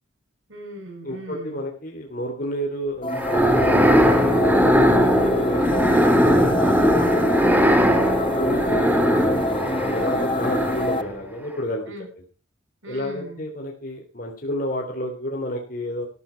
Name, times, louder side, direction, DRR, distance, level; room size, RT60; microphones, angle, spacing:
voice 1, 0.5-1.6 9.9-10.1 11.9-12.1 12.8-13.4, equal, 80° right, 3 dB, 7.4 m, -38 dB
voice 2, 1.0-5.9 6.1-6.8 8.2-11.8 12.9-16.1, equal, 45° left, 1 dB, 3.2 m, -31 dB
sound 1, 3.0-11.0, left 2 dB, 25° left, 0.7 m, -27 dB
sound 2, 3.1-11.2, equal, 10° right, 1.9 m, -19 dB
14.5 x 13.5 x 4.6 m, 0.36 s
head